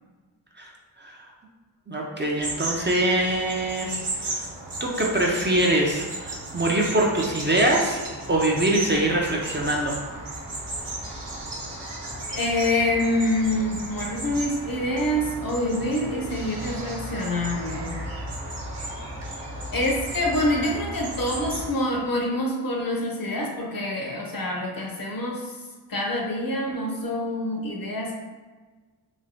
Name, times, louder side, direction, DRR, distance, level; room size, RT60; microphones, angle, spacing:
voice 1, 1.9-4.4 4.8-8.0 8.3-10.0, right 1 dB, 25° right, -2 dB, 0.5 m, -23 dB
sound 1, 2.4-21.7, right 1 dB, 60° right, 1.0 m, -35 dB
voice 2, 12.3-18.0 19.7-25.5 25.9-28.2, left 1 dB, 50° left, 0 dB, 0.7 m, -26 dB
3.1 x 2.3 x 2.6 m, 1.3 s
cardioid pair, 45°, 44 cm